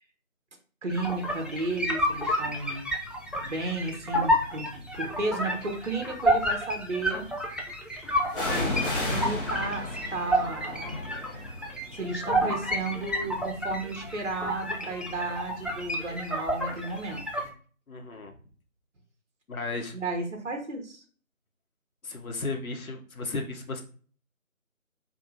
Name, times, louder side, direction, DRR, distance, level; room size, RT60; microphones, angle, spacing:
voice 1, 0.8-2.9 3.4-4.7 4.9-7.3 8.5-10.9 11.9-17.5 19.9-21.0, right 2 dB, 60° right, 4 dB, 0.7 m, -33 dB
sound 1, 0.9-17.5, equal, ahead, 0.4 m, -30 dB
sound 2, 3.3-3.7 4.5-5.4 8.3-15.9 16.2-16.3, left 2 dB, 40° left, 1.1 m, -35 dB
voice 2, 17.9-18.3 19.5-19.9 22.0-23.8, left 3 dB, 90° left, 3 dB, 0.8 m, -34 dB
2.6 x 2.5 x 2.7 m, 0.42 s
figure-of-eight pair, 170°, 41 cm